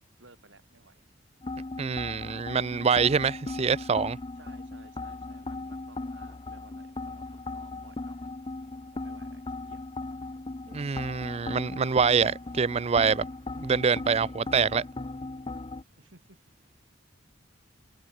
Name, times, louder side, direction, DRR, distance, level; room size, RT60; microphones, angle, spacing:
voice 1, 0.2-1.0 4.4-8.5 8.9-9.9 16.0-16.4, right 3 dB, 80° right, 7.4 m, -57 dB
sound 1, 1.4-15.8, left 2 dB, 30° left, 0.6 m, -38 dB
voice 2, 1.8-4.2 10.7-13.3 13.6-14.8, right 5 dB, 35° right, 0.4 m, -25 dB
head